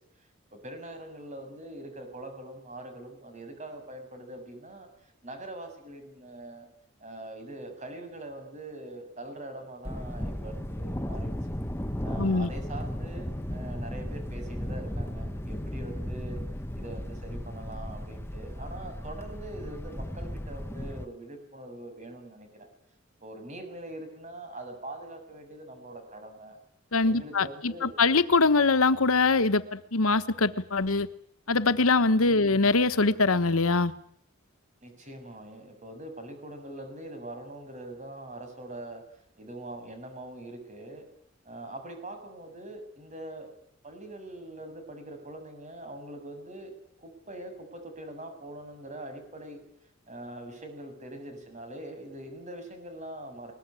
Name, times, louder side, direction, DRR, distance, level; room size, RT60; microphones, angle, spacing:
voice 1, 0.6-6.7 7.0-11.4 12.0-16.4 16.7-22.7 23.2-26.6 27.0-27.9 32.2-32.7 34.8-39.0 39.4-41.1 41.5-43.5 43.8-46.7 47.0-49.6 50.1-53.5, right 1 dB, 35° right, 6.9 m, -43 dB
Thunder, 9.9-21.1, equal, 10° left, 1.0 m, -35 dB
voice 2, 12.2-12.5 26.9-31.1 31.5-33.9, left 3 dB, 85° left, 1.2 m, -23 dB
21.5 x 21.0 x 9.9 m
head